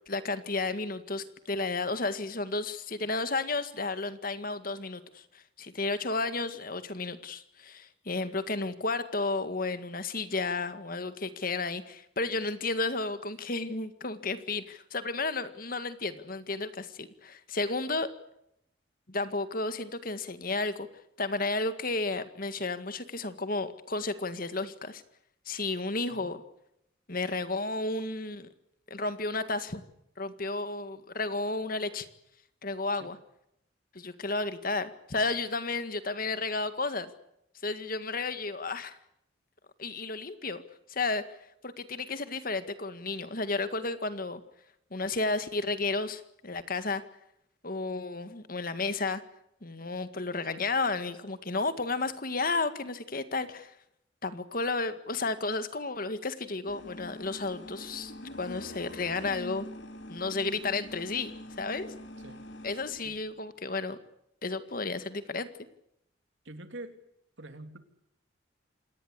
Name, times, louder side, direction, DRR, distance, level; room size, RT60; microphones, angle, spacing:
voice 1, 0.1-18.1 19.1-20.9 21.2-25.0 25.5-26.4 27.1-28.5 28.9-29.8 30.2-32.1 32.6-33.2 33.9-37.1 37.6-39.0 39.8-40.6 40.9-41.4 41.6-44.4 44.9-47.0 47.6-49.2 49.6-53.8 54.2-58.1 58.4-59.7 60.1-61.9 62.6-64.0 64.4-65.5, left 3 dB, 45° left, 11 dB, 1.9 m, -32 dB
sound 1, 56.7-63.2, left 1 dB, 65° left, 2.8 m, -44 dB
voice 2, 66.4-67.0 67.4-67.8, right 2 dB, 70° right, 8 dB, 3.1 m, -45 dB
27.5 x 19.0 x 8.2 m, 0.78 s
head